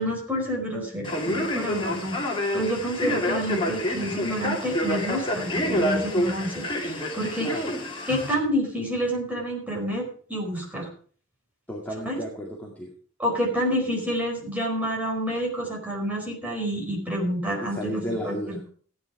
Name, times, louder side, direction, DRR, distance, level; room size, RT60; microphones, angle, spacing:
voice 1, 0.0-2.1 2.5-7.5 8.1-10.9 12.0-12.2 13.2-18.7, equal, 10° right, -2 dB, 4.7 m, -28 dB
Male speech man speaking, 1.0-8.3, left 1 dB, 25° left, 3.0 m, -28 dB
voice 2, 7.4-7.7 11.7-12.9 17.6-18.6, equal, 10° left, -2 dB, 2.1 m, -33 dB
15.0 x 9.6 x 4.9 m, 0.43 s
head